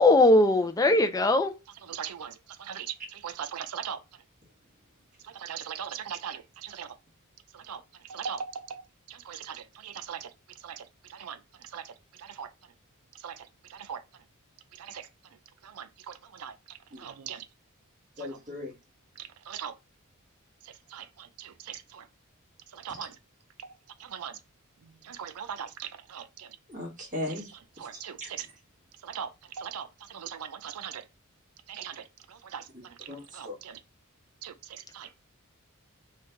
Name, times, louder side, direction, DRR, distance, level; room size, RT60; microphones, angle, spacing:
voice 1, 0.0-1.5, left 2 dB, 15° left, 0.4 m, -20 dB
voice 2, 1.9-4.0 5.2-7.0 7.5-12.5 13.1-14.0 14.7-15.1 15.6-17.5 18.2-18.3 19.2-19.8 20.6-22.1 22.7-23.1 23.6-24.4 24.8-26.6 27.8-28.5 29.0-31.0 31.7-33.8 34.4-35.2, right 8 dB, 80° right, 0.4 m, -41 dB
voice 3, 18.2-18.7 22.9-23.0 26.7-27.5 27.9-28.3 33.1-33.6, left 1 dB, 35° right, 1.4 m, -37 dB
3.2 x 2.4 x 4.3 m
head